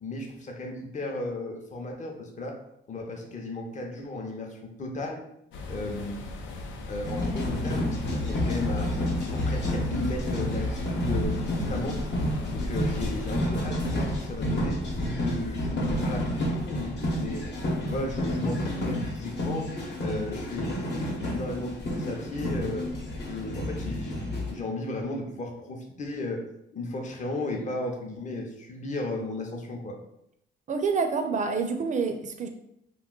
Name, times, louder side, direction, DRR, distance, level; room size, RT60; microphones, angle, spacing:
voice 1, 0.0-2.6 2.9-5.2 5.7-6.3 6.9-8.9 9.3-12.0 12.5-14.8 15.2-17.5 17.8-19.7 20.0-22.9 23.2-24.2 24.5-26.5 26.7-30.0, left 2 dB, 35° left, 2 dB, 0.6 m, -35 dB
sound 1, 5.5-13.5, left 2 dB, 75° left, 0.5 m, -39 dB
sound 2, 7.0-24.5, left 1 dB, 60° left, 1.0 m, -30 dB
voice 2, 30.7-32.5, right 5 dB, 40° right, 6 dB, 0.4 m, -27 dB
2.5 x 2.3 x 3.7 m, 0.77 s
cardioid pair, 90°, 20 cm